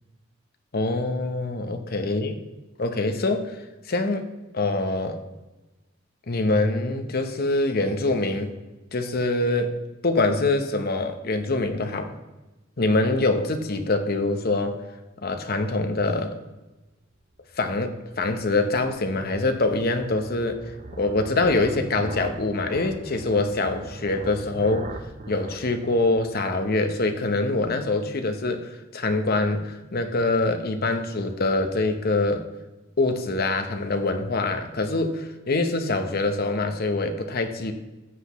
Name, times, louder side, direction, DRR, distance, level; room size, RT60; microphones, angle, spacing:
voice 1, 0.7-2.4 2.8-3.6 3.9-4.2 4.5-5.2 6.3-8.5 8.9-9.7 10.0-12.1 12.8-14.8 15.2-16.4 17.6-20.6 20.9-24.9 25.3-32.4 33.0-37.7, left 2 dB, 50° left, 6 dB, 0.9 m, -24 dB
sound 1, 17.4-27.0, right 2 dB, 40° right, 0.7 m, -41 dB
14.0 x 8.1 x 3.1 m, 1.1 s
head